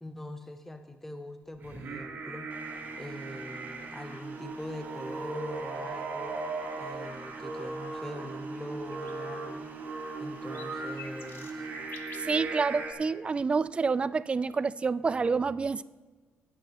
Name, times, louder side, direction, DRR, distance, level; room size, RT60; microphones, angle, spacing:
voice 1, 0.0-2.5 3.0-6.4 6.8-9.7 10.2-11.7, left 1 dB, 5° left, 0.6 m, -42 dB
Singing, 1.6-12.9, right 3 dB, 60° right, 2.6 m, -38 dB
sound 1, 2.5-12.0, right 3 dB, 45° right, 2.2 m, -52 dB
sound 2, 8.9-9.2 9.6-9.7 10.2-12.4 14.5-14.6, left 6 dB, 60° left, 1.0 m, -49 dB
voice 2, 12.2-15.8, right 4 dB, 25° right, 0.3 m, -28 dB
18.0 x 9.1 x 3.0 m
cardioid pair, 125°, 4 cm